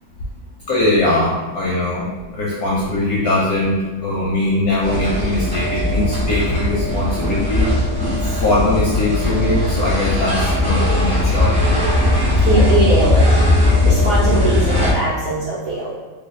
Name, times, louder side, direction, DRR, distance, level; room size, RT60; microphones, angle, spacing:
voice 1, 0.7-2.1 2.3-7.7 8.2-11.8, left 2 dB, 70° left, -6 dB, 0.9 m, -21 dB
sound 1, 4.8-14.9, left 1 dB, 10° right, 0.4 m, -18 dB
voice 2, 12.5-13.2 13.8-16.0, right 1 dB, 65° right, -8 dB, 0.8 m, -20 dB
3.3 x 2.2 x 3.6 m, 1.2 s
omnidirectional pair, 2.2 m